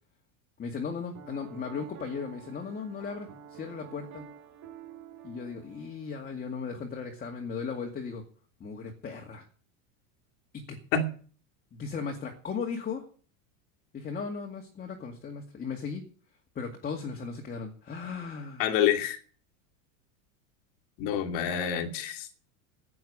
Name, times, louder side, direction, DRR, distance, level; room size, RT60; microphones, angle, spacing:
voice 1, 0.6-4.2 5.2-8.2 8.6-9.5 10.5-10.8 11.7-13.0 13.9-16.0 16.6-18.7, left 5 dB, 25° left, 2 dB, 2.2 m, -37 dB
Piano, 1.1-6.4, right 9 dB, 45° right, 3.4 m, -49 dB
voice 2, 18.6-19.2 21.0-22.3, left 8 dB, 55° left, 5 dB, 2.4 m, -27 dB
10.5 x 8.6 x 10.0 m, 0.43 s
supercardioid pair, 140°, 40 cm